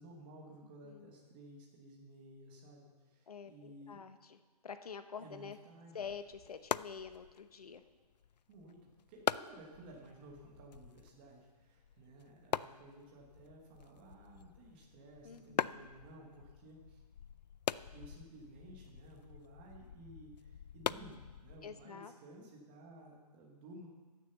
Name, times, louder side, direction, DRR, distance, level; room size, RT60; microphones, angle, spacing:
voice 1, 0.0-4.0 5.2-6.1 8.5-17.0 17.9-23.9, right 1 dB, 15° right, -1 dB, 1.2 m, -55 dB
voice 2, 3.3-5.6 5.9-7.8 15.2-15.9 21.6-22.1, left 6 dB, 65° left, 10 dB, 1.0 m, -47 dB
sound 1, 6.0-21.8, left 8 dB, 90° left, 0.4 m, -43 dB
13.5 x 6.8 x 6.8 m, 1.3 s
hypercardioid pair, 175°, 21 cm